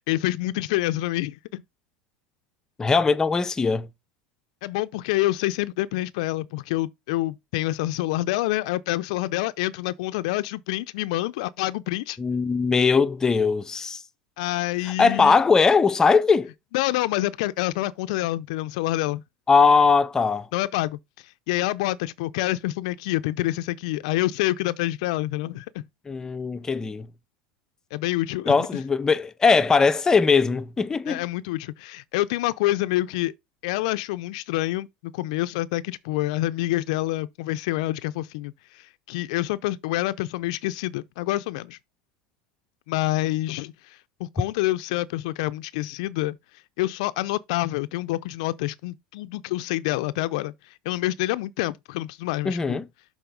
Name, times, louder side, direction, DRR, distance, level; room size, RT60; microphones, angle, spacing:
voice 1, 0.0-1.6 4.6-12.2 14.4-15.4 16.7-19.2 20.5-25.8 27.9-28.7 31.1-33.3 33.6-41.8 42.9-46.4 46.8-50.5 50.9-52.8, left 17 dB, 75° left, 0.4 m, -27 dB
voice 2, 2.8-3.9 12.2-14.0 15.0-16.5 19.5-20.5 26.1-27.1 28.5-31.2 52.4-52.8, left 5 dB, 15° left, 0.6 m, -20 dB
6.9 x 4.2 x 5.1 m
supercardioid pair, 125°, 4 cm